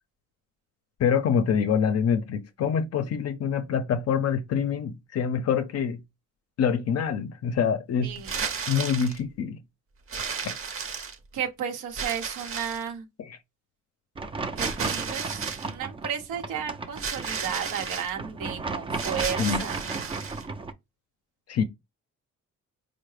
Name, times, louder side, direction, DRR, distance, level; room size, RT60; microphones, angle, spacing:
voice 1, 1.0-6.0 6.6-8.1 8.7-9.6 10.4-10.6 13.3-13.4 19.4-19.7 21.5-21.6, left 7 dB, 55° left, 0.5 m, -25 dB
voice 2, 8.0-8.4 11.3-13.1 14.6-19.9, right 8 dB, 90° right, 0.8 m, -33 dB
sound 1, 8.2-9.2 10.1-11.4 12.0-12.9 14.6-15.7 17.0-18.1 18.9-20.4, right 6 dB, 45° right, 0.8 m, -33 dB
sound 2, 14.2-20.7, right 3 dB, 20° right, 0.4 m, -35 dB
4.4 x 2.0 x 3.2 m
cardioid pair, 90°, 30 cm